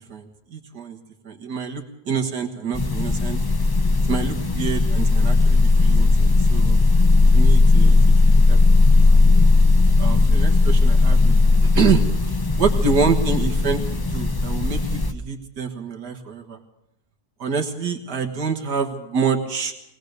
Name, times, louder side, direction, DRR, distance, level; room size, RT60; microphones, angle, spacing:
voice 1, 0.1-1.0 1.2-3.4 4.1-6.8 7.3-8.0 8.5-8.6 9.1-9.2 10.0-11.4 11.7-16.6 17.4-19.7, right 5 dB, 75° right, 2 dB, 2.2 m, -26 dB
sound 1, 2.7-15.1, left 3 dB, 30° left, 0.4 m, -16 dB
23.0 x 19.0 x 6.7 m, 0.85 s
omnidirectional pair, 1.8 m